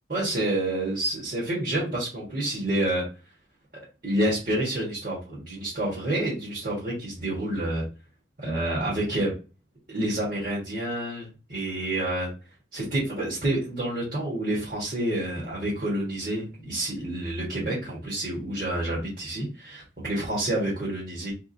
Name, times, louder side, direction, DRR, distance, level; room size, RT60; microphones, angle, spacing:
voice 1, 0.1-3.0 4.0-7.8 8.4-9.3 9.9-12.3 12.7-21.3, right 1 dB, 45° right, -7 dB, 1.7 m, -28 dB
4.0 x 3.6 x 2.7 m, 0.33 s
head